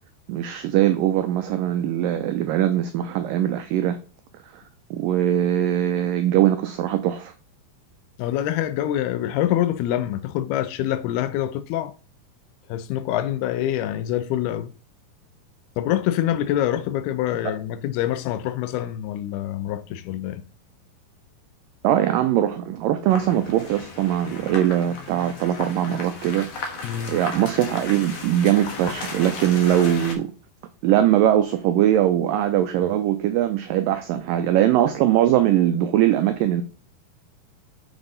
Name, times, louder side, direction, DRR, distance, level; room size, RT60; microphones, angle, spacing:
voice 1, 0.3-4.0 4.5-4.6 4.9-7.3 21.8-26.8 27.1-30.3 30.8-36.6, right 12 dB, 90° right, 1.9 m, -21 dB
voice 2, 8.2-11.9 12.7-14.7 15.8-20.4 26.8-27.2, left 12 dB, 80° left, 2.6 m, -25 dB
sound 1, 23.1-30.1, left 4 dB, 55° left, 2.0 m, -35 dB
7.2 x 7.0 x 3.9 m
omnidirectional pair, 4.7 m